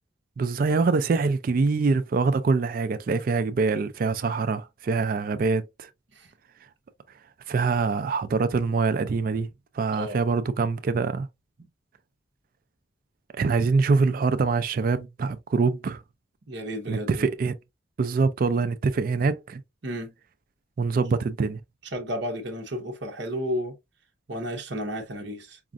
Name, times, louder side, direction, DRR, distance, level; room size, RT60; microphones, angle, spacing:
voice 1, 0.4-5.9 7.5-9.5 9.7-11.3 13.3-16.0 16.9-17.6 18.0-19.6 20.8-21.6, right 4 dB, 50° right, 0.3 m, -24 dB
voice 2, 16.5-17.2 19.8-20.1 21.9-23.7 24.3-25.6, equal, 65° right, 0.9 m, -32 dB
5.0 x 2.4 x 2.4 m
head